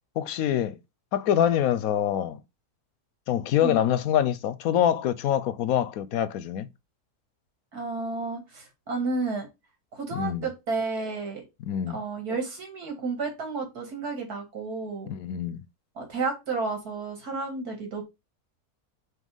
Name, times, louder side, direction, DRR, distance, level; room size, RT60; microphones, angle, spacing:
voice 1, 0.2-0.8 1.1-2.4 3.3-6.7 10.1-10.5 11.6-12.0 15.1-15.6, left 10 dB, 75° left, 1.0 m, -25 dB
voice 2, 7.7-9.5 9.9-11.4 11.9-15.1 16.0-18.0, right 4 dB, 85° right, 2.5 m, -31 dB
5.6 x 3.2 x 5.3 m
omnidirectional pair, 1.6 m